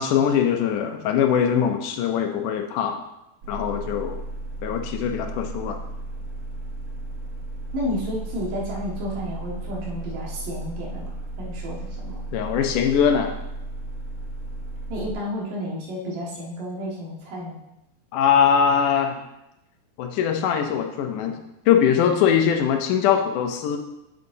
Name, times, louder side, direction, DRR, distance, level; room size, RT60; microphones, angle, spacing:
voice 1, 0.0-3.0 3.5-4.2 4.6-5.8 12.3-13.3 18.1-19.3 20.0-21.4 21.7-23.8, left 8 dB, 80° left, 5 dB, 2.2 m, -21 dB
sound 1, 3.4-15.1, right 2 dB, 70° right, 1.3 m, -34 dB
voice 2, 7.7-12.2 14.9-17.6, equal, 85° right, -3 dB, 3.3 m, -31 dB
8.2 x 7.9 x 2.7 m, 0.89 s
omnidirectional pair, 3.8 m